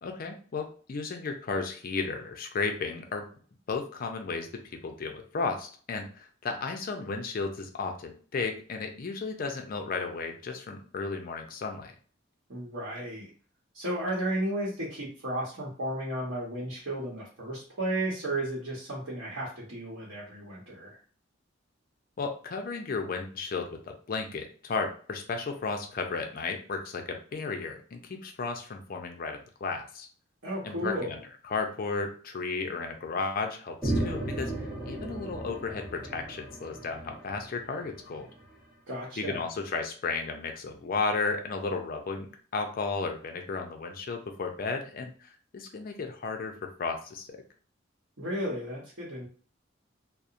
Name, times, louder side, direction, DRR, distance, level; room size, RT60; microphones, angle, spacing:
voice 1, 0.0-3.3 3.7-11.9 22.2-30.1 30.6-31.2 31.5-34.5 34.8-38.3 39.2-47.4, left 4 dB, 50° left, 5 dB, 0.4 m, -34 dB
voice 2, 12.5-13.3 13.7-21.0 30.4-31.1 38.9-39.4 48.2-49.3, right 1 dB, 90° right, -5 dB, 0.9 m, -33 dB
sound 1, 33.8-38.5, right 1 dB, 5° right, 0.7 m, -35 dB
2.8 x 2.0 x 2.4 m, 0.42 s
head